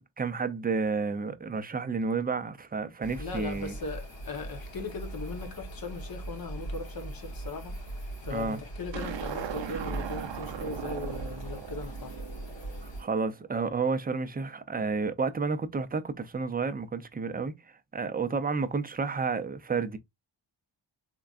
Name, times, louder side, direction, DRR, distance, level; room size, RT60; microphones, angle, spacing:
voice 1, 0.0-3.7 8.3-8.6 13.0-17.5 17.9-20.0, right 4 dB, 20° right, 0.4 m, -31 dB
sound 1, 3.0-13.0, right 1 dB, 85° left, 2.0 m, -40 dB
voice 2, 3.2-7.8 8.2-12.2, left 3 dB, 50° left, 1.0 m, -39 dB
sound 2, 8.9-13.3, right 8 dB, 80° right, 0.6 m, -39 dB
3.7 x 3.3 x 2.4 m
wide cardioid pair, 145°, 44 cm